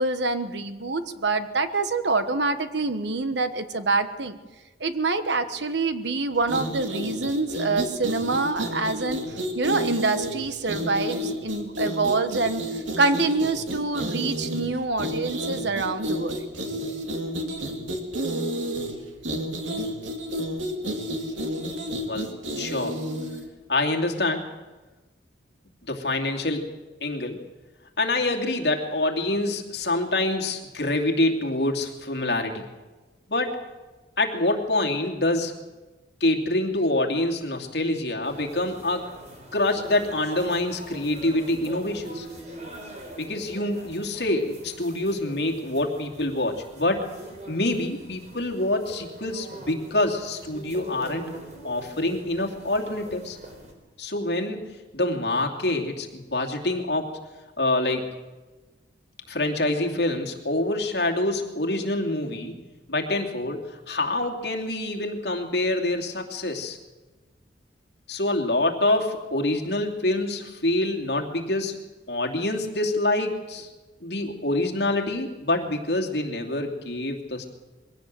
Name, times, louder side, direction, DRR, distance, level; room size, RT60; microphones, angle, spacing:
voice 1, 0.0-4.4 4.8-9.2 9.5-12.6 13.0-16.4, right 3 dB, 65° right, 10 dB, 1.3 m, -26 dB
sound 1, 6.4-23.5, equal, 85° right, 2.7 m, -31 dB
voice 2, 22.1-23.0 23.7-24.5 25.8-26.7 27.0-27.4 28.0-32.7 33.3-33.6 34.2-35.5 36.2-39.1 39.5-42.3 43.2-47.1 47.5-51.2 51.6-53.4 54.0-57.1 57.6-58.1 59.3-62.5 62.9-66.8 68.1-71.8 72.1-73.7 74.0-77.4, left 2 dB, 60° left, 2 dB, 2.7 m, -26 dB
sound 2, 38.2-53.7, right 1 dB, 40° right, 4.1 m, -42 dB
22.5 x 17.0 x 7.7 m, 1.2 s
head